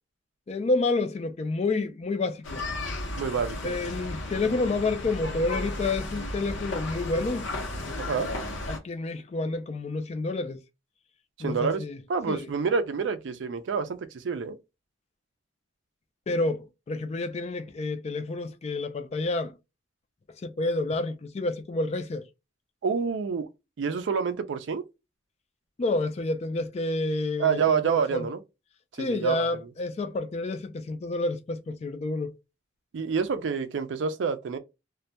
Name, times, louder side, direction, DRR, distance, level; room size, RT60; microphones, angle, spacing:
voice 1, 0.5-2.6 3.6-10.6 11.4-12.0 12.3-12.5 16.3-19.5 20.4-22.3 25.8-27.6 27.9-28.3 29.0-32.4, left 2 dB, 35° left, 0.3 m, -29 dB
sound 1, 2.4-8.8, left 2 dB, 80° left, 0.7 m, -34 dB
voice 2, 3.2-3.7 8.0-8.3 11.4-11.8 12.1-14.6 22.8-23.5 23.8-24.8 27.4-28.4 29.0-29.5 32.9-34.6, right 6 dB, 70° right, 0.4 m, -27 dB
2.2 x 2.1 x 2.7 m
head